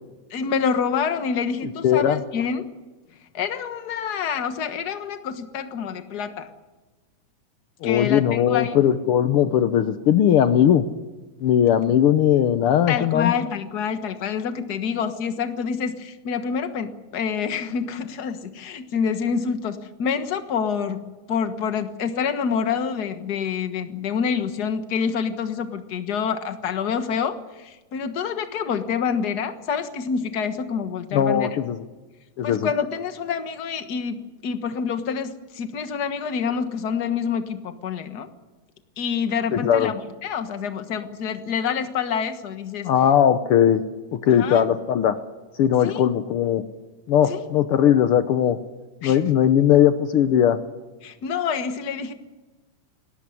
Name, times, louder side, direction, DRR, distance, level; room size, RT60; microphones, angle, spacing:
voice 1, 0.3-2.7 3.3-6.5 7.8-8.8 12.9-21.0 21.3-31.5 32.4-38.3 39.0-42.9 44.3-44.7 45.8-46.1 47.3-47.5 49.0-49.2 51.0-52.1, left 6 dB, 50° left, 9 dB, 1.2 m, -27 dB
voice 2, 1.8-2.2 7.8-10.8 11.4-13.3 31.1-31.8 32.4-32.7 39.5-39.9 42.8-43.8 44.2-45.2 45.6-46.6 47.1-48.6 49.0-50.6, left 10 dB, 85° left, 10 dB, 1.2 m, -19 dB
20.0 x 18.0 x 9.8 m, 1.2 s
omnidirectional pair, 3.7 m